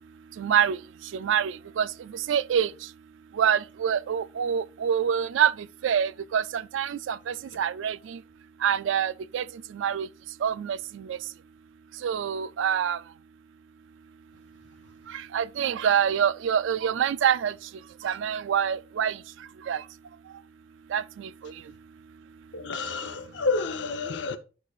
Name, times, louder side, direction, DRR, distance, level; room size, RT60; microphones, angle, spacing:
voice 1, 0.4-0.8 1.1-1.9 2.3-2.7 3.4-5.5 5.8-8.0 8.6-9.4 9.8-10.1 10.4-10.8 12.0-13.0 15.3-17.5 18.0-19.1 19.7-19.8 20.9-21.0, right 8 dB, 75° right, 0.3 m, -25 dB
voice 2, 22.5-24.4, left 4 dB, 65° left, 0.8 m, -29 dB
13.0 x 4.9 x 2.4 m
head